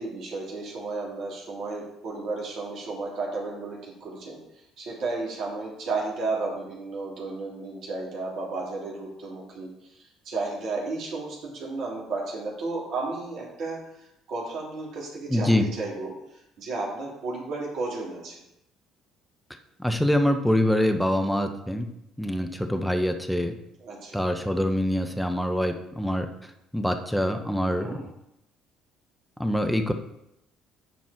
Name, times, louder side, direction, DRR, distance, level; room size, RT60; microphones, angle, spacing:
voice 1, 0.0-4.4 4.8-9.7 10.2-13.8 14.3-16.2 16.6-18.4 23.8-24.2 27.8-28.1, right 3 dB, 60° right, -4 dB, 2.6 m, -33 dB
voice 2, 15.3-15.7 19.8-21.9 22.2-23.5 24.1-26.3 26.7-28.0 29.4-29.9, left 1 dB, ahead, 6 dB, 1.2 m, -24 dB
9.4 x 4.6 x 4.7 m, 0.82 s
hypercardioid pair, 55°, 0 cm